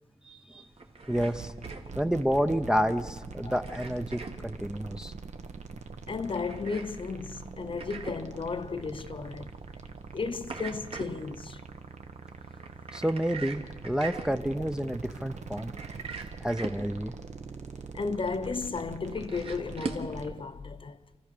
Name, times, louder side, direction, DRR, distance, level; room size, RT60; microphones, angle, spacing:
voice 1, 0.2-0.7 1.1-1.5 2.0-5.1 12.9-15.7 16.4-17.1, equal, 5° right, 0.6 m, -29 dB
sound 1, 0.6-20.1, right 4 dB, 50° right, 1.7 m, -44 dB
sound 2, 1.0-20.4, right 4 dB, 65° right, 1.3 m, -44 dB
voice 2, 6.1-9.5 10.1-11.6 17.9-21.0, left 4 dB, 45° left, 0.8 m, -34 dB
27.5 x 15.0 x 6.7 m
wide cardioid pair, 160°, 13 cm